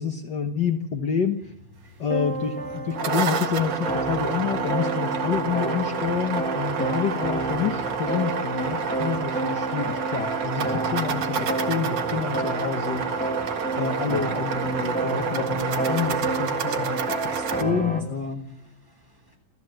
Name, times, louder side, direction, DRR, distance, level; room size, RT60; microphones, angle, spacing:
voice 1, 0.0-1.5 2.0-13.2 13.8-17.0 17.6-18.5, left 7 dB, 60° left, 1.1 m, -28 dB
sound 1, 1.4-18.0, right 2 dB, 10° left, 0.4 m, -30 dB
sound 2, 2.7-17.6, right 6 dB, 55° right, 2.7 m, -29 dB
voice 2, 17.3-17.6 18.4-19.4, right 1 dB, 5° right, 6.5 m, -54 dB
30.0 x 14.0 x 7.9 m
omnidirectional pair, 3.8 m